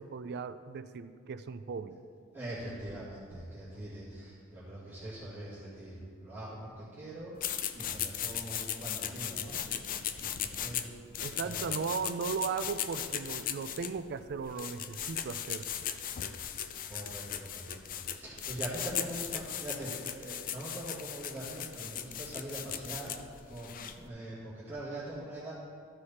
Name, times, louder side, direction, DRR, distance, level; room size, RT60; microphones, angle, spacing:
voice 1, 0.0-1.9 11.2-15.7, right 5 dB, 55° right, 12 dB, 0.4 m, -37 dB
voice 2, 2.3-11.0 11.4-11.9 16.8-17.8 18.1-23.1 23.5-25.5, right 1 dB, 10° right, -12 dB, 2.0 m, -43 dB
sound 1, 7.4-24.1, left 9 dB, 45° left, 0.4 m, -38 dB
13.5 x 4.9 x 4.2 m, 2.1 s
head